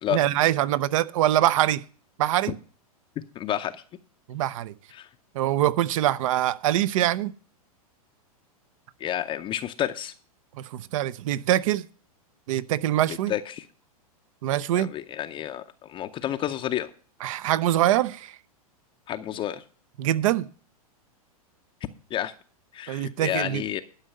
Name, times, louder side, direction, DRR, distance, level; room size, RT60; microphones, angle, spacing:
voice 1, 0.1-1.8 2.2-2.5 4.3-4.7 5.3-7.3 10.6-11.9 12.5-13.3 14.4-14.9 17.2-18.4 20.0-20.5 22.9-23.6, right 13 dB, 60° right, 0.7 m, -24 dB
voice 2, 3.4-3.8 4.9-5.1 9.0-10.1 13.3-13.7 14.7-16.9 19.1-19.6 22.1-22.3 22.7-23.8, left 11 dB, 25° left, 0.6 m, -30 dB
11.5 x 5.3 x 7.8 m
hypercardioid pair, 115°, 19 cm